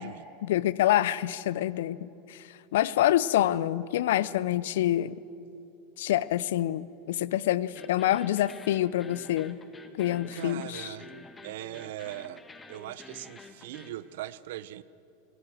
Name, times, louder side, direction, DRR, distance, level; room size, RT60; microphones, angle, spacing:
voice 1, 0.4-2.4 2.7-5.2 6.0-9.6 10.0-10.9, left 13 dB, 70° left, 19 dB, 0.6 m, -26 dB
sound 1, 7.7-13.9, left 4 dB, 20° left, 1.8 m, -49 dB
voice 2, 10.3-11.1 11.4-12.4 12.7-14.8, right 14 dB, 65° right, 18 dB, 0.6 m, -40 dB
23.0 x 17.5 x 7.6 m, 2.8 s
hypercardioid pair, 90°, 0 cm